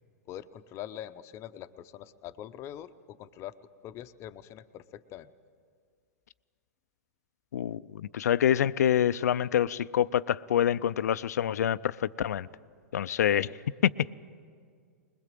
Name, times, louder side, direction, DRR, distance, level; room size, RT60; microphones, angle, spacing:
voice 1, 0.3-3.6 3.8-5.3 13.3-13.5, left 11 dB, 30° left, 0.7 m, -43 dB
voice 2, 7.5-12.5 12.9-13.5 13.8-13.9, left 10 dB, 75° left, 0.5 m, -26 dB
21.5 x 21.5 x 7.6 m
hypercardioid pair, 125°, 9 cm